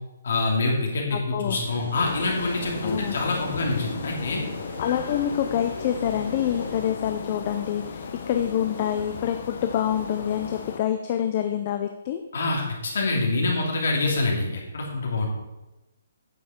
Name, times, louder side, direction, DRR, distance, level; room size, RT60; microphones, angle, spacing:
voice 1, 0.2-4.4 12.3-12.6 12.9-15.3, left 2 dB, 60° left, -1 dB, 2.7 m, -25 dB
voice 2, 1.1-1.6 2.8-3.2 4.8-12.2, left 10 dB, 30° left, 7 dB, 0.5 m, -26 dB
sound 1, 1.5-6.9, right 2 dB, 50° right, 3.0 m, -42 dB
sound 2, 1.9-10.8, left 5 dB, 45° left, 0.8 m, -36 dB
9.1 x 6.8 x 4.4 m, 1.0 s
hypercardioid pair, 170°, 0 cm